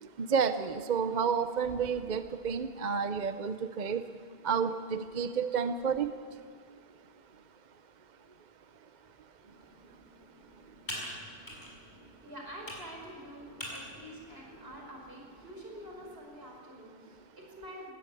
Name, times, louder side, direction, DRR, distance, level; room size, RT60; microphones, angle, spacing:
voice 1, 0.2-4.0 4.4-6.1, right 6 dB, 50° right, 10 dB, 0.8 m, -30 dB
Computer keyboard, 9.4-16.2, equal, 50° left, 6.2 m, -47 dB
voice 2, 12.2-17.9, equal, 80° right, 0 dB, 5.6 m, -47 dB
19.5 x 17.5 x 9.1 m, 2.2 s
omnidirectional pair, 1.0 m